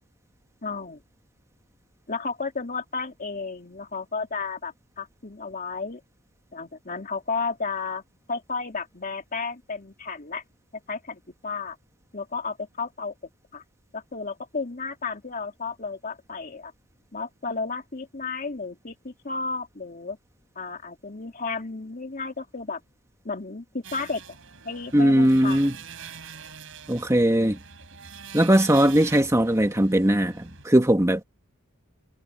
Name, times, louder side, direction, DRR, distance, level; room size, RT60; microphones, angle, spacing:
voice 1, 0.6-1.0 2.1-6.0 6.5-8.0 8.3-10.4 10.9-11.8 12.1-13.1 13.5-13.6 13.9-16.7 17.1-20.2 20.6-22.8 23.2-24.2 24.6-25.6, left 4 dB, 40° left, 2.6 m, -33 dB
sound 1, 23.8-30.6, right 6 dB, 65° right, 6.2 m, -44 dB
voice 2, 24.9-25.7 26.9-27.6 28.3-31.2, right 1 dB, 15° right, 1.8 m, -19 dB
head